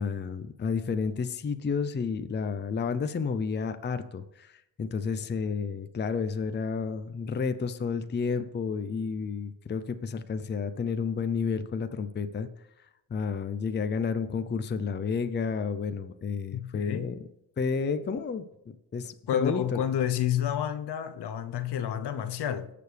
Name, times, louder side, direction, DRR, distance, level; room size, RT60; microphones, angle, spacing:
voice 1, 0.0-12.5 13.1-17.2 17.6-18.4 18.9-19.8, left 5 dB, 25° left, 0.6 m, -31 dB
voice 2, 16.5-17.1 19.3-22.7, left 10 dB, 65° left, 0.9 m, -29 dB
18.0 x 6.8 x 3.4 m
cardioid pair, 110°, 44 cm